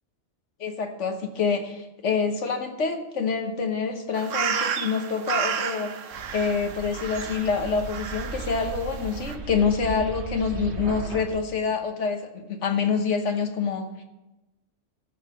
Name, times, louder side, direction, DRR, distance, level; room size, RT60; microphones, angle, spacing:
voice 1, 0.6-5.9 6.3-13.9, left 5 dB, 75° left, 6 dB, 1.4 m, -26 dB
sound 1, 4.1-9.4, right 7 dB, 85° right, 1.1 m, -32 dB
sound 2, 6.1-11.3, right 3 dB, 65° right, 1.3 m, -36 dB
13.0 x 5.5 x 7.1 m, 1.0 s
omnidirectional pair, 1.3 m